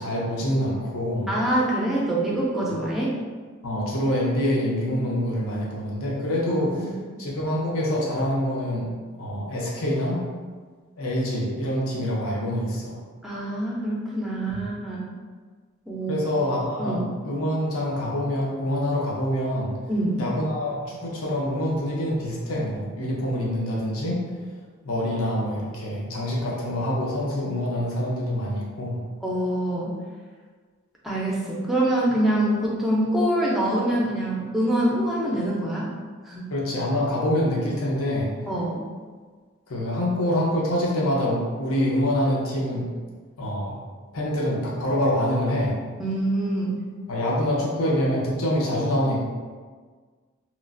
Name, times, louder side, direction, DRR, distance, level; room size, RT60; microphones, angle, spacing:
voice 1, 0.0-1.3 3.6-6.9 7.2-8.9 9.2-10.2 11.0-13.0 14.5-14.6 16.1-17.0 17.2-19.7 20.2-24.2 24.8-29.0 36.5-38.3 39.7-42.9 43.4-43.8 44.1-45.8 47.1-49.2, left 1 dB, 85° left, -4 dB, 0.7 m, -25 dB
voice 2, 1.3-3.1 6.5-6.9 13.2-15.1 15.9-16.3 16.8-17.0 19.9-20.2 29.2-30.0 31.0-35.9 36.2-36.4 38.5-38.8 46.0-46.8, right 1 dB, ahead, -5 dB, 0.4 m, -25 dB
3.0 x 2.4 x 2.4 m, 1.5 s
head